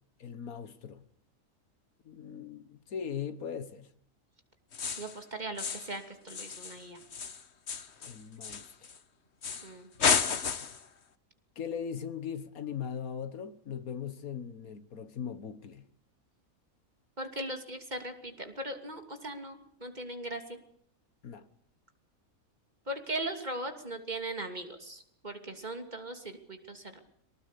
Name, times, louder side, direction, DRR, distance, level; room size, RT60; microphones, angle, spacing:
voice 1, 0.2-1.1 2.1-3.9 8.0-8.9 11.6-15.9 21.2-21.5, left 7 dB, 85° left, 1.8 m, -39 dB
sound 1, 4.7-5.2 5.6-6.0 6.3-9.0 9.4-9.7 10.0-10.9, left 6 dB, 50° left, 1.5 m, -32 dB
voice 2, 5.0-7.0 9.6-9.9 17.2-20.6 22.9-27.0, right 1 dB, 30° right, 3.0 m, -39 dB
24.0 x 18.5 x 8.4 m
omnidirectional pair, 1.5 m